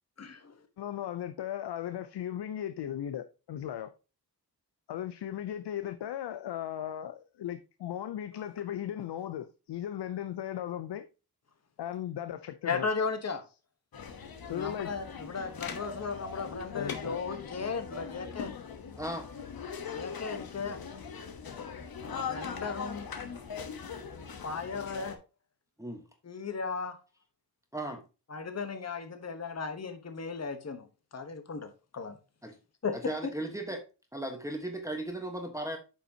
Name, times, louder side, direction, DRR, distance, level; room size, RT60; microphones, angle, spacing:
voice 1, 0.2-0.5 12.7-13.4 14.5-18.5 19.9-20.8 22.0-23.1 24.4-25.2 26.2-27.0 28.3-30.9 31.1-32.2 32.8-33.0 33.2-33.3, left 5 dB, 40° left, 1.1 m, -36 dB
voice 2, 0.8-3.9 4.9-11.0 11.8-12.9 14.5-14.9 16.7-17.2, left 10 dB, 80° left, 0.6 m, -37 dB
sound 1, 13.9-25.2, left 6 dB, 60° left, 1.1 m, -41 dB
voice 3, 19.0-19.3 25.8-26.1 27.7-28.0 32.4-32.5 33.0-33.8 34.1-35.8, right 1 dB, 10° right, 1.2 m, -36 dB
8.5 x 5.6 x 2.8 m
wide cardioid pair, 85°, 40 cm